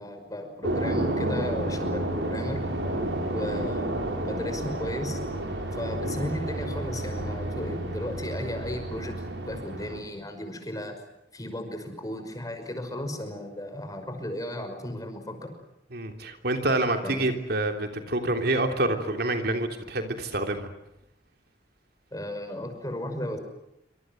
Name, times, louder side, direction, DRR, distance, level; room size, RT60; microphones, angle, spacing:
voice 1, 0.0-2.6 3.3-5.2 5.7-9.2 9.5-11.0 11.3-15.5 17.0-17.3 22.1-23.4, left 1 dB, 20° left, 6 dB, 5.6 m, -35 dB
sound 1, 0.6-10.0, right 1 dB, 75° right, 6.1 m, -31 dB
voice 2, 15.9-20.7, right 2 dB, 60° right, 5 dB, 3.3 m, -27 dB
27.5 x 26.0 x 7.8 m, 0.84 s
head